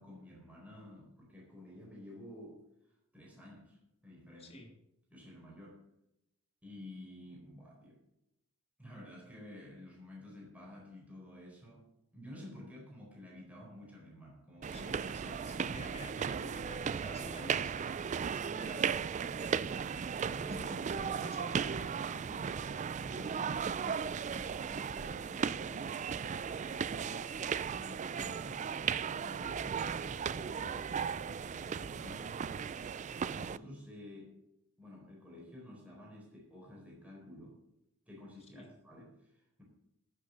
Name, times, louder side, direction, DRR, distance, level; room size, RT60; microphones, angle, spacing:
voice 1, 0.0-4.6 5.1-5.8 6.6-8.0 8.8-11.9 12.1-16.1 18.3-19.6 19.9-21.3 23.1-27.3 27.6-32.7 33.3-34.4 34.8-37.6 38.1-39.6, left 1 dB, 5° right, -3 dB, 4.2 m, -51 dB
voice 2, 4.4-4.7 14.7-18.4 20.4-22.2 38.5-38.7, left 2 dB, 30° left, 1 dB, 2.8 m, -51 dB
sound 1, 14.6-33.6, right 6 dB, 35° right, 0.3 m, -36 dB
14.0 x 6.8 x 6.5 m, 0.84 s
head